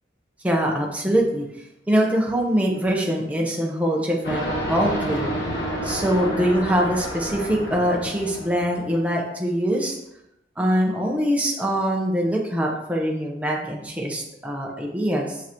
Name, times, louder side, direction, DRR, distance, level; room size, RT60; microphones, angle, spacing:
voice 1, 0.4-1.5 1.9-5.3 5.8-10.0 10.6-15.4, equal, 10° right, -1 dB, 1.0 m, -23 dB
sound 1, 4.2-9.0, equal, 75° left, 2.2 m, -29 dB
7.0 x 5.6 x 3.1 m, 0.84 s
head